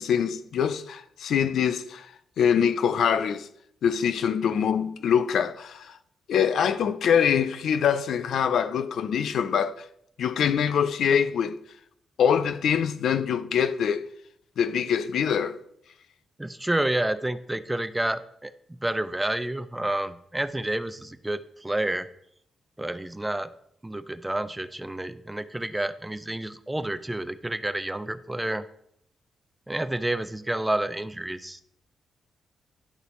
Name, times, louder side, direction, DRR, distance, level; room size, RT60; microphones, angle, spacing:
voice 1, 0.0-3.5 3.8-6.0 6.3-9.9 10.2-11.6 12.2-14.0 14.6-15.6, left 7 dB, 75° left, 0.5 m, -24 dB
voice 2, 16.4-18.5 18.8-22.1 22.8-23.5 23.8-28.6 29.7-31.6, right 1 dB, 10° right, 0.5 m, -29 dB
11.0 x 4.0 x 3.1 m
cardioid pair, 70°, 0 cm